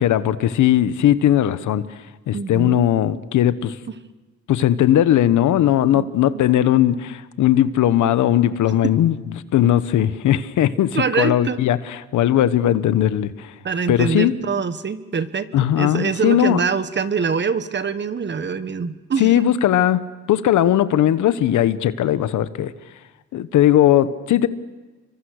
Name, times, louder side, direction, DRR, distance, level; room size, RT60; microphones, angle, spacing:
voice 1, 0.0-1.8 2.3-3.8 4.5-13.5 13.9-14.3 15.5-16.6 19.2-20.0 20.3-22.7 23.3-24.5, left 11 dB, 75° left, 13 dB, 1.2 m, -18 dB
voice 2, 2.3-2.8 3.9-4.0 5.9-6.1 6.3-6.4 8.8-8.9 10.9-11.6 13.6-15.5 15.7-19.5, right 5 dB, 35° right, 12 dB, 1.4 m, -24 dB
30.0 x 24.5 x 6.6 m, 1.2 s
cardioid pair, 90°, 30 cm